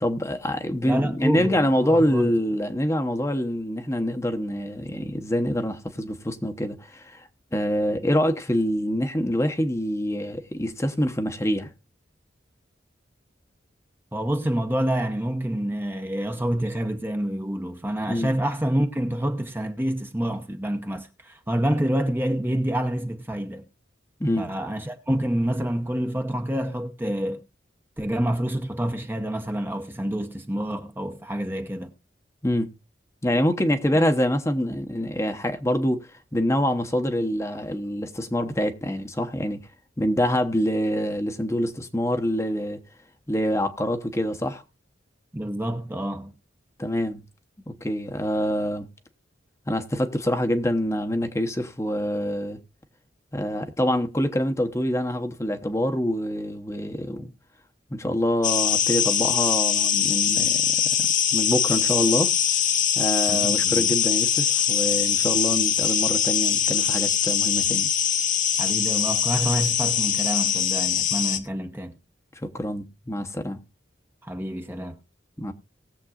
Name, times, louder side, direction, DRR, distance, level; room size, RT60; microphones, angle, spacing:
voice 1, 0.0-11.7 18.1-18.3 24.2-24.5 32.4-32.7 33.2-39.6 40.0-42.8 43.3-44.6 46.8-47.2 47.7-48.9 49.7-52.6 53.3-57.3 57.9-60.7 61.3-62.3 62.9-67.9 72.4-73.6 75.4-75.5, equal, 15° left, 0.9 m, -25 dB
voice 2, 0.8-2.3 14.1-23.7 24.4-27.4 28.0-31.9 45.3-46.3 63.3-63.9 68.6-72.0 74.2-75.0, right 1 dB, 10° right, 0.8 m, -27 dB
sound 1, 58.4-71.4, left 9 dB, 45° left, 0.9 m, -22 dB
19.5 x 7.4 x 2.4 m
head